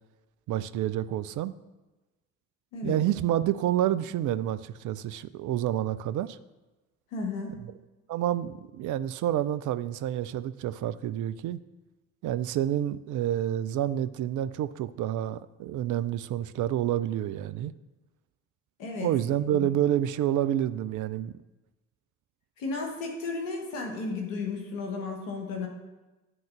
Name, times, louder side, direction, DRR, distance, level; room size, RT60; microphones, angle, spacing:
voice 1, 0.5-1.5 2.8-6.4 8.1-11.6 12.2-17.7 19.0-21.3, right 12 dB, 50° right, 13 dB, 0.5 m, -28 dB
voice 2, 7.1-7.5 18.8-19.1 19.6-19.7 22.6-25.7, left 4 dB, 80° left, 1 dB, 1.3 m, -33 dB
11.0 x 3.9 x 7.3 m, 1.1 s
figure-of-eight pair, 40°, 39 cm